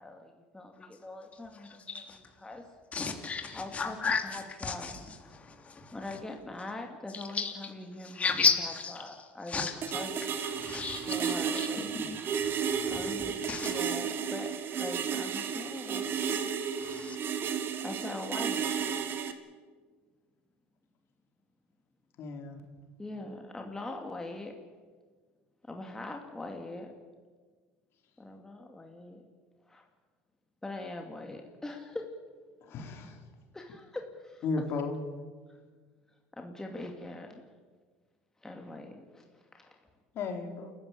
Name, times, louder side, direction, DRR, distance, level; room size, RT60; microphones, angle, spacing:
voice 1, 0.0-2.6 3.5-4.9 5.9-10.2 11.1-11.9 12.9-14.5 14.8-16.1 17.8-18.7 23.0-24.5 25.7-26.9 28.2-29.2 29.6-29.9 30.6-32.0 33.5-34.4 35.5-35.6 36.3-37.4 38.4-39.8, left 2 dB, 10° left, 2.6 m, -42 dB
voice 2, 2.9-4.9 5.4-5.9 7.3-7.5 8.0-9.0 9.5-9.7 10.6-11.3 11.9-13.0 13.5-13.8 16.8-17.2, left 5 dB, 25° left, 3.5 m, -32 dB
sound 1, 9.8-19.3, right 7 dB, 45° right, 2.3 m, -33 dB
voice 3, 22.2-22.6 32.6-33.2 34.4-35.0 40.1-40.7, left 4 dB, 55° left, 4.1 m, -34 dB
29.5 x 14.5 x 8.6 m
supercardioid pair, 110°, 5 cm